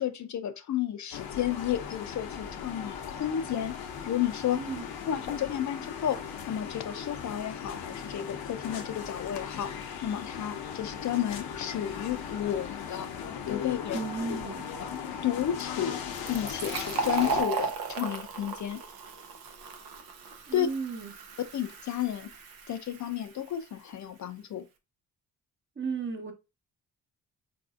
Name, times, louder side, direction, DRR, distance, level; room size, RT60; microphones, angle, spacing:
voice 1, 0.0-3.7 4.0-4.6 5.1-6.2 6.5-9.7 10.0-13.1 13.5-14.0 14.8-14.9 15.2-16.0 16.3-18.8 20.5-20.7 21.5-22.3 22.7-24.7, left 10 dB, 55° left, 0.4 m, -32 dB
sound 1, 1.1-17.4, left 7 dB, 85° left, 0.7 m, -38 dB
voice 2, 13.9-14.7 20.5-21.1 25.8-26.3, right 4 dB, 30° right, 0.8 m, -34 dB
Fill (with liquid), 16.1-23.5, right 5 dB, 85° right, 0.7 m, -36 dB
4.0 x 2.6 x 2.4 m
cardioid pair, 75°, 36 cm